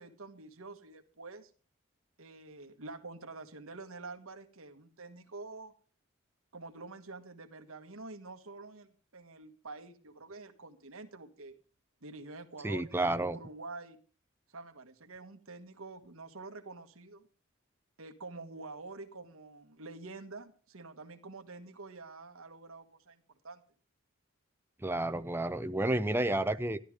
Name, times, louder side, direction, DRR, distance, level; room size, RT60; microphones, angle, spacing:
voice 1, 0.0-1.5 2.2-5.7 6.5-11.5 12.0-14.0 14.5-17.3 18.0-23.6, right 3 dB, 80° right, 1.5 m, -47 dB
voice 2, 12.6-13.4 24.8-26.8, right 1 dB, 10° right, 0.5 m, -31 dB
13.0 x 12.0 x 4.9 m
head